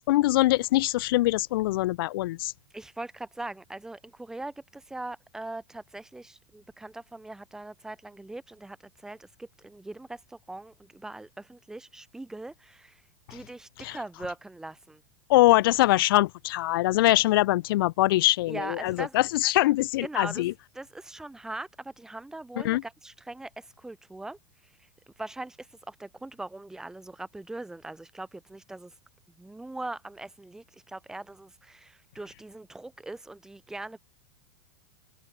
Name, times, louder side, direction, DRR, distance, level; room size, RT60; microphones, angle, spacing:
voice 1, 0.1-2.5 13.3-13.4 13.8-14.0 15.3-20.5 22.6-22.8, left 17 dB, 65° left, 1.0 m, -23 dB
voice 2, 2.7-15.0 18.5-19.2 20.0-20.4 20.7-24.9 25.2-29.0 29.4-34.0, right 2 dB, 5° right, 2.4 m, -41 dB
open air
supercardioid pair, 170°, 13 cm